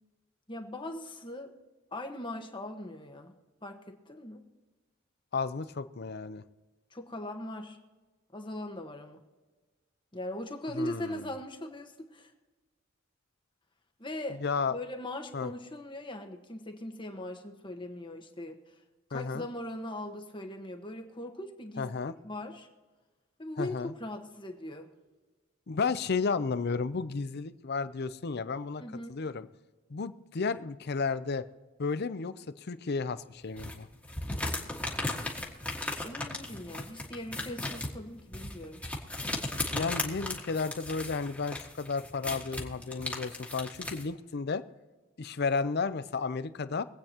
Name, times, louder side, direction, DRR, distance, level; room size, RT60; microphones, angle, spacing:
voice 1, 0.5-1.5 1.9-3.3 3.6-4.4 6.9-7.8 8.3-9.2 10.1-12.3 14.0-14.4 14.7-18.6 19.1-21.9 22.2-22.7 23.4-24.9 28.8-29.2 36.0-38.8, left 1 dB, 25° left, 4 dB, 1.3 m, -40 dB
voice 2, 5.3-6.4 10.7-11.3 14.4-14.8 15.3-15.5 19.1-19.5 21.8-22.1 23.6-23.9 25.7-28.8 29.1-29.5 29.9-31.4 31.8-33.9 39.7-44.6 45.2-46.8, left 4 dB, 55° left, 13 dB, 0.6 m, -33 dB
sound 1, 33.6-44.0, left 2 dB, 5° left, 1.7 m, -36 dB
24.0 x 8.7 x 2.9 m, 1.3 s
head